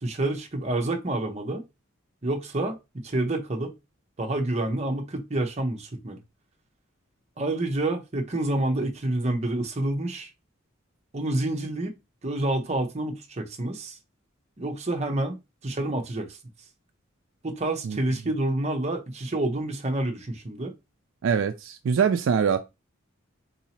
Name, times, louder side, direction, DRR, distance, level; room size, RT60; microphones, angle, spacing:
voice 1, 0.0-1.6 2.2-3.7 4.2-6.2 7.4-10.3 11.1-11.9 12.2-14.0 14.6-15.4 15.6-16.4 17.4-20.7, right 2 dB, 35° right, 0.7 m, -28 dB
voice 2, 21.2-22.6, right 6 dB, 70° right, 0.3 m, -23 dB
4.0 x 2.7 x 2.8 m
head